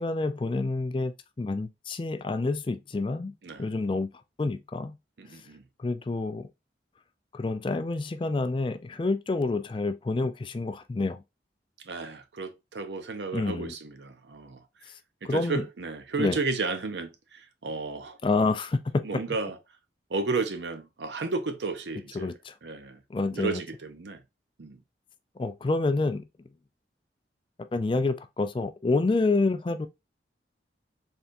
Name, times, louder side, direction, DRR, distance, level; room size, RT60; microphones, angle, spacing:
voice 1, 0.0-3.3 3.6-4.1 4.4-5.0 5.8-6.5 7.3-11.2 13.3-13.7 15.2-15.6 16.2-16.4 18.2-18.8 22.1-22.5 23.1-23.6 25.4-26.2 27.7-29.9, left 3 dB, 30° left, 0.3 m, -28 dB
voice 2, 5.2-5.6 11.8-14.6 15.2-18.2 19.0-19.6 20.1-22.3 22.6-23.0 23.3-24.2 24.6-24.8, right 3 dB, 75° right, 0.7 m, -33 dB
4.2 x 3.4 x 2.6 m
head